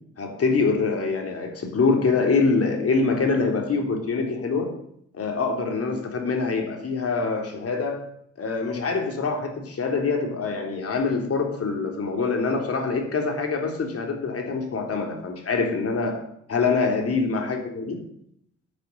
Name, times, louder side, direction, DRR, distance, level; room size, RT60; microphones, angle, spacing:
voice 1, 0.2-4.7 5.2-8.0 8.4-16.2 16.5-18.0, left 4 dB, 50° left, 3 dB, 3.6 m, -25 dB
10.5 x 9.0 x 8.0 m, 0.71 s
cardioid pair, 90°, 30 cm